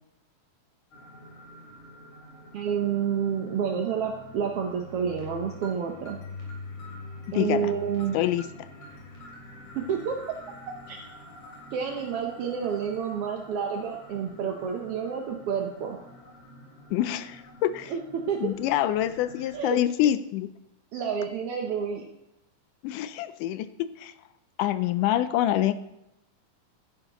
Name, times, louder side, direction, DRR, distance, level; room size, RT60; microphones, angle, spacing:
sound 1, 0.9-19.6, left 2 dB, 60° left, 4.4 m, -46 dB
voice 1, 2.5-6.2 7.3-8.2 9.7-10.2 10.9-11.0 11.7-16.0 17.9-18.5 19.5-19.8 20.9-22.0, right 7 dB, 75° right, 2 dB, 1.3 m, -29 dB
voice 2, 7.3-7.7 8.1-8.4 16.9-17.9 18.4-20.5 22.8-24.1 24.6-25.7, left 12 dB, 80° left, 13 dB, 2.0 m, -26 dB
12.5 x 10.0 x 3.0 m, 0.87 s
omnidirectional pair, 3.8 m